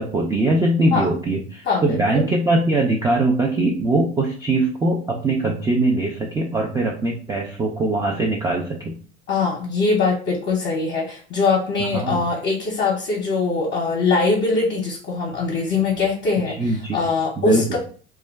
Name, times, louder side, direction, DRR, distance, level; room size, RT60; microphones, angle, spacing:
voice 1, 0.0-8.9 11.9-12.2 16.6-17.0 17.4-17.6, right 2 dB, 10° right, -1 dB, 0.3 m, -21 dB
voice 2, 1.6-2.2 9.3-17.8, left 4 dB, 35° left, -3 dB, 0.7 m, -22 dB
2.2 x 2.2 x 3.3 m, 0.42 s
hypercardioid pair, 85°, 33 cm